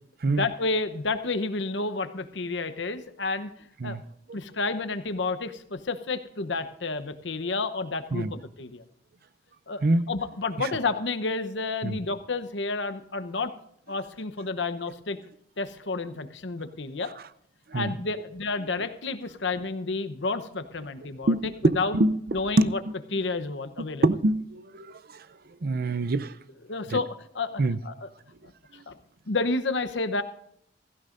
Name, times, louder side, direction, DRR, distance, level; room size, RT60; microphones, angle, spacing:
voice 1, 0.2-4.0 4.3-8.8 9.7-13.5 13.9-15.2 15.6-17.1 17.7-22.0 22.3-22.8 23.1-24.0 26.6-28.1 28.7-29.0 29.3-30.2, left 3 dB, 75° left, 0.9 m, -30 dB
voice 2, 21.3-22.2 22.6-22.7 24.0-24.9 25.6-26.3 26.9-27.0 27.6-27.8, right 2 dB, 55° right, 0.6 m, -24 dB
16.0 x 15.0 x 2.6 m
head